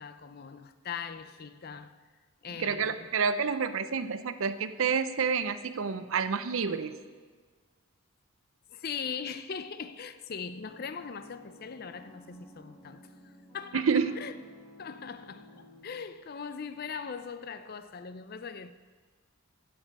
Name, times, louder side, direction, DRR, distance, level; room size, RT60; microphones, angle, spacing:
voice 1, 0.0-2.0 2.4-3.1 8.7-14.3 14.8-18.7, left 6 dB, 45° left, 0.4 m, -40 dB
voice 2, 2.6-6.9 13.7-14.1, right 6 dB, 65° right, 0.5 m, -29 dB
sound 1, 10.6-15.9, left 1 dB, 20° left, 3.4 m, -54 dB
16.0 x 7.2 x 5.3 m
head